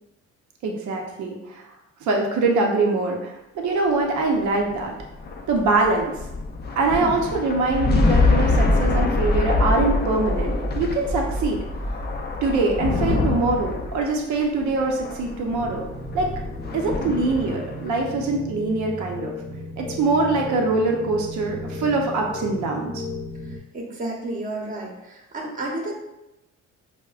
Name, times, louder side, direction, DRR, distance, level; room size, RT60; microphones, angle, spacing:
voice 1, 0.6-1.6 2.0-4.9 5.5-6.1 6.8-11.6 12.4-15.9 16.1-16.3 16.7-19.3 19.8-23.0, right 3 dB, 70° right, 1 dB, 0.6 m, -23 dB
sound 1, 4.3-17.9, left 2 dB, 35° left, 0.4 m, -24 dB
sound 2, 15.5-23.6, left 2 dB, 5° left, 0.8 m, -35 dB
voice 2, 23.5-26.0, right 2 dB, 25° right, -1 dB, 0.8 m, -32 dB
4.8 x 2.1 x 2.3 m, 0.92 s
cardioid pair, 90°, 30 cm